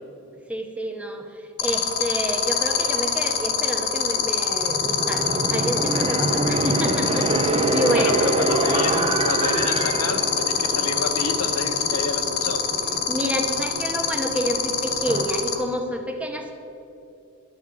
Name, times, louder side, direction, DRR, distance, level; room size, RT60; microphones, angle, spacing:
voice 1, 0.5-8.4 13.1-16.5, equal, 5° right, 3 dB, 1.0 m, -28 dB
sound 1, 1.6-15.5, left 9 dB, 50° left, 1.2 m, -23 dB
sound 2, 4.6-15.3, right 2 dB, 25° right, 0.7 m, -26 dB
voice 2, 7.9-12.6, left 3 dB, 80° left, 7 dB, 0.9 m, -29 dB
11.0 x 7.1 x 8.5 m, 2.7 s
head